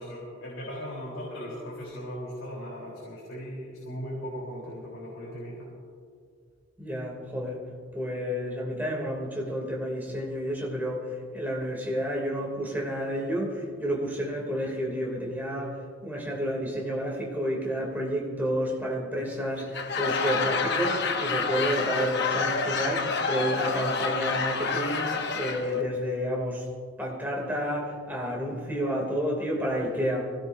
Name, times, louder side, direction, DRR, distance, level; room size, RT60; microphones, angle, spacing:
voice 1, 0.0-5.7, equal, 85° left, -4 dB, 3.9 m, -38 dB
voice 2, 6.8-7.6 7.9-26.6 27.0-30.3, equal, 10° right, -2 dB, 2.9 m, -30 dB
Laughter / Crowd, 19.6-25.8, left 4 dB, 55° left, 1.0 m, -28 dB
24.0 x 17.0 x 2.7 m, 2.2 s
head